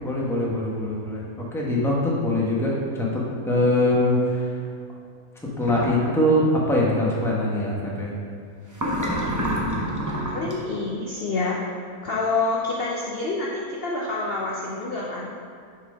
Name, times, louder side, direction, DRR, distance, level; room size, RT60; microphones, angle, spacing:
voice 1, 0.0-4.6 5.6-8.1, left 1 dB, ahead, -4 dB, 1.0 m, -23 dB
sound 1, 5.6-6.1 8.7-10.5, equal, 15° right, 0.6 m, -27 dB
voice 2, 10.3-11.6 12.0-15.3, left 3 dB, 50° left, -3 dB, 0.8 m, -27 dB
6.7 x 4.8 x 5.0 m, 2.3 s
omnidirectional pair, 1.6 m